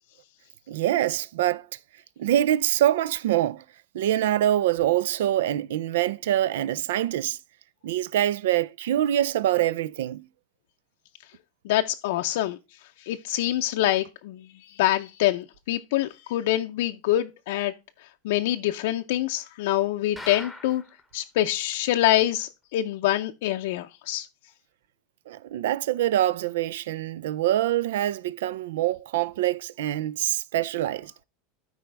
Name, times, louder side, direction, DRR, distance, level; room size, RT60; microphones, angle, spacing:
voice 1, 0.7-1.7 2.2-3.6 3.9-7.4 7.8-10.3 25.3-31.1, right 12 dB, 80° right, 0.4 m, -25 dB
voice 2, 11.6-12.6 13.0-17.7 18.2-20.8 21.1-24.3, left 14 dB, 65° left, 0.5 m, -25 dB
sound 1, 20.2-21.0 21.4-21.5 21.7-21.8 22.3-22.4, left 2 dB, ahead, 1.0 m, -40 dB
12.5 x 4.7 x 3.3 m
supercardioid pair, 160°, 0 cm